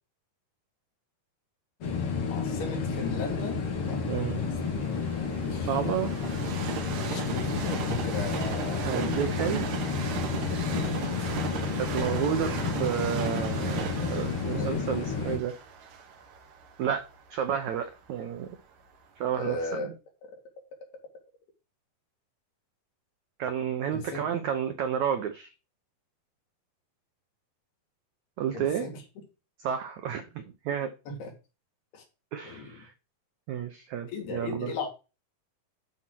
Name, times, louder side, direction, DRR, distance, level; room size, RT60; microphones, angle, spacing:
sound 1, 1.8-15.4, left 5 dB, 45° left, 2.1 m, -31 dB
voice 1, 2.3-3.6 3.9-4.3 5.4-6.0 7.1-9.4 10.5-11.3 14.6-15.0 19.3-19.9 20.2-20.4 23.9-24.2 28.5-29.0 31.1-31.3 31.9-32.0 32.4-32.7 34.1-34.9, left 4 dB, 70° left, 4.5 m, -36 dB
Train, 2.9-18.8 19.4-19.5, right 7 dB, 60° right, 2.8 m, -38 dB
voice 2, 4.0-4.4 5.7-6.1 8.8-9.7 11.8-15.5 16.8-18.6 19.2-19.8 23.4-25.5 28.4-28.8 29.6-30.9 32.3-32.9 33.5-34.7, right 9 dB, 80° right, 1.6 m, -31 dB
12.0 x 4.3 x 6.2 m
omnidirectional pair, 4.7 m